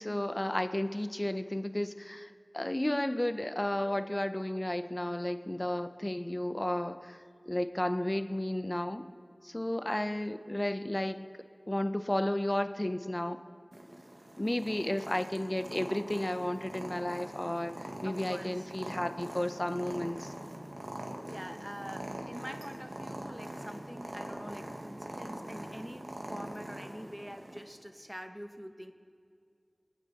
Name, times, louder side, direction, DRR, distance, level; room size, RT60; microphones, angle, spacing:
voice 1, 0.0-9.0 9.4-11.3 11.7-13.4 14.4-20.3, left 1 dB, 30° left, 10 dB, 0.6 m, -33 dB
Purr, 13.7-27.6, right 1 dB, 65° right, 1.6 m, -43 dB
voice 2, 14.7-15.2 18.0-18.7 21.3-28.9, equal, 5° right, 7 dB, 1.0 m, -45 dB
27.0 x 9.3 x 4.1 m, 2.2 s
wide cardioid pair, 45°, 0 cm